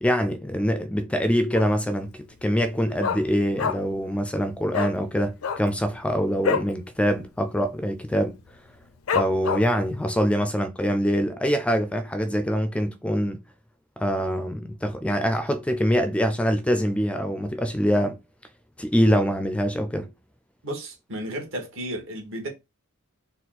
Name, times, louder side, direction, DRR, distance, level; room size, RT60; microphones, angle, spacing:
voice 1, 0.0-8.4 9.1-13.4 14.0-18.2 18.8-20.1, equal, 5° left, 0.3 m, -24 dB
Dog, 1.5-2.0 2.2-2.3 2.6-4.0 4.3-4.4 4.7-5.0 5.3-6.8 7.1-7.3 7.5-7.9 8.4-8.5 9.1-9.9 10.3-10.4, left 6 dB, 85° left, 0.5 m, -27 dB
voice 2, 20.6-22.5, right 1 dB, 65° right, 1.7 m, -33 dB
4.1 x 2.3 x 4.0 m
head